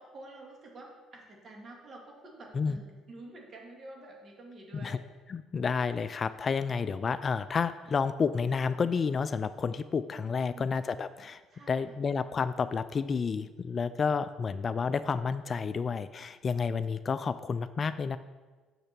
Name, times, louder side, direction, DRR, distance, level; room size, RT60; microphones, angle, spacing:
voice 1, 0.0-5.0 10.2-10.7 11.5-12.0, right 2 dB, 45° right, -1 dB, 2.4 m, -49 dB
voice 2, 5.3-11.4 11.7-18.2, left 5 dB, 40° left, 14 dB, 0.3 m, -30 dB
6.7 x 6.6 x 6.0 m, 1.3 s
supercardioid pair, 80°, 0 cm